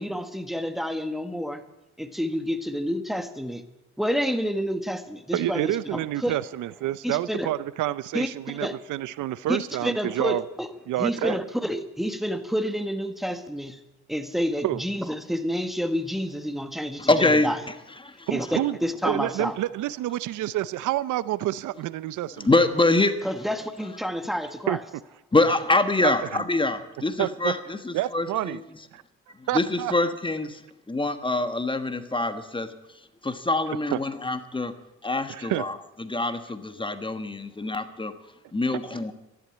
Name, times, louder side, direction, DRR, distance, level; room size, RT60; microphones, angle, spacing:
voice 1, 0.0-1.6 2.0-3.6 4.0-6.3 7.0-7.5 8.1-8.8 9.5-10.7 11.0-13.8 14.1-17.6 18.3-19.5 23.2-24.8, equal, ahead, 9 dB, 1.4 m, -29 dB
voice 2, 5.3-10.4 10.9-11.4 14.6-14.8 18.3-18.8 19.0-22.5 24.7-24.8 26.0-26.4 27.2-27.5 27.9-28.6 28.9-29.0 29.5-29.9 33.9-34.0 35.3-35.6 38.7-38.8, right 14 dB, 80° right, 18 dB, 0.6 m, -28 dB
voice 3, 17.0-17.7 18.0-18.3 22.4-23.2 25.3-28.6 29.4-30.6 30.9-32.7 33.2-34.7 35.0-38.1 38.5-39.1, left 2 dB, 15° left, 10 dB, 1.4 m, -25 dB
13.5 x 11.0 x 8.6 m, 0.91 s
cardioid pair, 90°, 30 cm